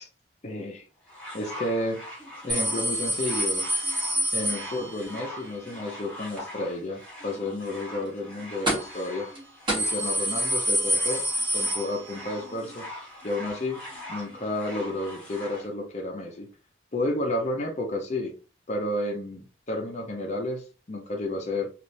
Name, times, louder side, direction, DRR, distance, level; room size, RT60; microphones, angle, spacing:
voice 1, 0.4-0.9 1.3-2.1 2.4-3.6 4.3-9.3 9.7-11.3 11.5-12.9 13.2-13.8 14.1-16.5 16.9-18.3 18.7-21.7, left 1 dB, 35° left, 0.6 m, -31 dB
sound 1, 1.1-15.7 16.5-16.6, left 1 dB, 5° left, 1.1 m, -42 dB
sound 2, 2.5-5.2 8.7-9.1 9.3-9.4 9.7-12.4 12.7-12.8 13.9-14.0, right 1 dB, 25° right, 1.4 m, -27 dB
3.2 x 2.5 x 2.6 m
head